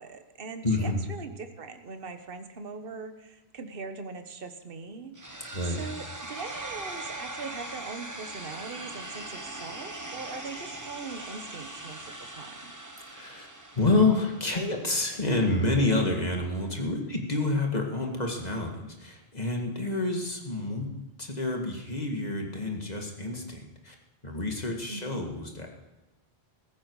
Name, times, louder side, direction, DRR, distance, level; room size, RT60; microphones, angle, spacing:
voice 1, 0.0-5.1 5.8-12.7 24.9-25.3, right 4 dB, 60° right, 8 dB, 1.3 m, -41 dB
voice 2, 0.6-1.0 5.5-5.9 13.1-13.5 13.7-20.9 21.2-24.0 24.2-25.7, left 2 dB, 40° left, 2 dB, 2.1 m, -28 dB
sound 1, 5.2-15.1, right 2 dB, 15° right, 1.3 m, -41 dB
15.5 x 14.5 x 4.8 m, 1.1 s
omnidirectional pair, 1.1 m